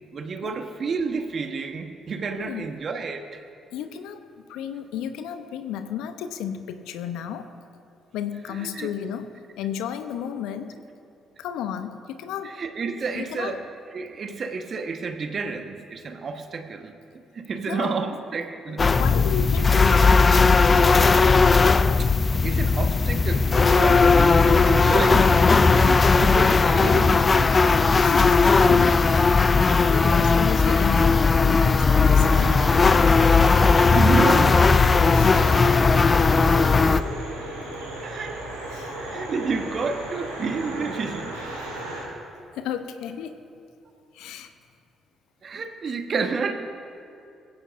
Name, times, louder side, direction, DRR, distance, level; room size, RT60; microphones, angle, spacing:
voice 1, 0.1-3.4 8.5-9.1 12.4-13.7 13.9-16.9 17.3-18.8 22.0-27.9 33.6-34.7 38.0-38.4 39.0-41.3 44.2-44.3 45.4-46.5, right 4 dB, 45° right, 7 dB, 1.2 m, -30 dB
voice 2, 3.7-4.2 4.5-7.5 8.1-9.3 9.6-10.7 11.4-12.5 13.1-13.5 17.7-17.9 18.7-21.3 28.0-32.8 35.1-35.6 38.7-39.0 42.5-43.4 44.1-44.5, left 9 dB, 70° left, 9 dB, 0.7 m, -33 dB
sound 1, 18.8-37.0, left 4 dB, 35° left, 0.5 m, -17 dB
sound 2, 32.0-42.0, right 1 dB, 85° right, 4.0 m, -34 dB
21.0 x 16.0 x 2.6 m, 2.5 s
figure-of-eight pair, 45°, 0 cm